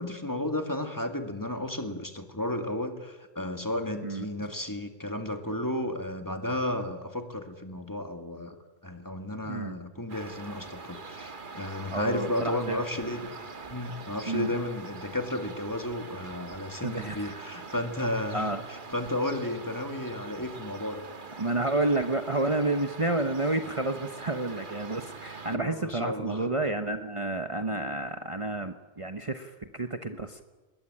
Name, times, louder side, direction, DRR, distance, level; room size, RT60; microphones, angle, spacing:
voice 1, 0.0-8.6 8.8-21.0 25.5-26.5, left 1 dB, 20° left, 6 dB, 2.1 m, -33 dB
voice 2, 9.4-9.8 11.9-12.8 14.2-14.5 16.8-17.4 18.3-18.6 21.4-30.4, right 2 dB, 30° right, 7 dB, 1.1 m, -30 dB
sound 1, 10.1-25.6, right 4 dB, 50° right, 1.6 m, -43 dB
21.0 x 21.0 x 9.9 m, 1.2 s
omnidirectional pair, 1.1 m